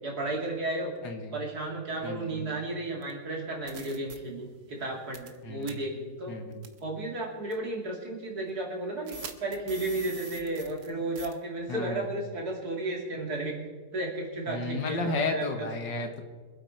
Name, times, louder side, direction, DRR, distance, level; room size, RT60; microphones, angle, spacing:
voice 1, 0.0-0.9 1.3-6.4 6.8-13.6 13.9-15.7, right 2 dB, 55° right, -1 dB, 3.2 m, -33 dB
voice 2, 1.0-1.4 2.0-2.6 5.4-5.7 6.3-6.7 11.7-12.1 14.5-16.2, left 3 dB, 80° left, 5 dB, 2.1 m, -33 dB
Mic Noise, 3.0-3.1 3.7-4.2 5.1-5.4 5.6-5.7 6.6-6.8 7.5-7.6 9.1-10.9 11.2-11.3, right 4 dB, 75° right, 1.6 m, -42 dB
24.5 x 8.2 x 4.5 m, 1.5 s
omnidirectional pair, 1.9 m